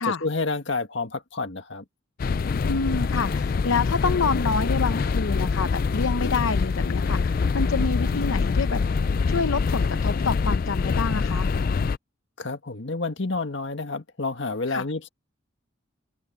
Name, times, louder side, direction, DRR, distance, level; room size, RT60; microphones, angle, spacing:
voice 1, 0.0-1.8 12.4-15.1, left 3 dB, 65° left, 1.7 m, -29 dB
sound 1, 2.2-12.0, left 4 dB, 45° left, 0.3 m, -24 dB
voice 2, 2.6-8.8 9.3-11.5 14.7-14.8, left 4 dB, 85° left, 0.8 m, -27 dB
open air
head